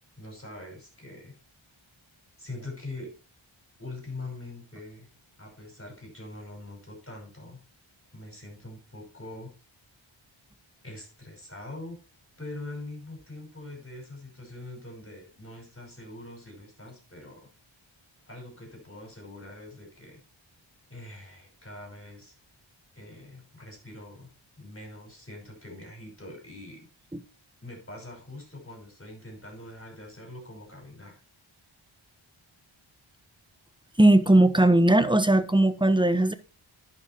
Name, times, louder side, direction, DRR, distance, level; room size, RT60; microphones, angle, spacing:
voice 1, 0.2-1.3 2.4-3.2 3.8-5.1 5.4-7.6 8.1-9.5 10.8-12.0 12.4-17.5 18.3-20.2 20.9-22.3 22.9-26.9 27.6-31.2, left 2 dB, 25° left, 1 dB, 5.8 m, -43 dB
voice 2, 34.0-36.3, right 1 dB, 10° right, 11 dB, 1.0 m, -19 dB
10.5 x 6.4 x 4.5 m, 0.34 s
wide cardioid pair, 55°, 49 cm